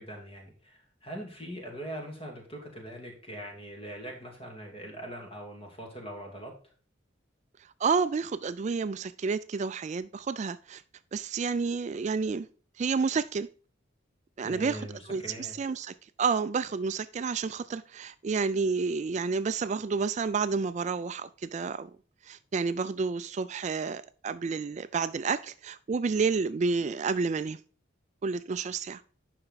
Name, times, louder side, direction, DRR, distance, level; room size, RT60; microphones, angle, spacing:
voice 1, 0.0-6.6 14.4-15.5, right 1 dB, 30° left, 2.7 m, -42 dB
voice 2, 7.6-10.8 11.1-12.5 12.8-13.5 14.4-21.9 22.2-27.6 28.2-29.0, right 5 dB, 35° right, 0.3 m, -30 dB
9.8 x 5.8 x 4.0 m
head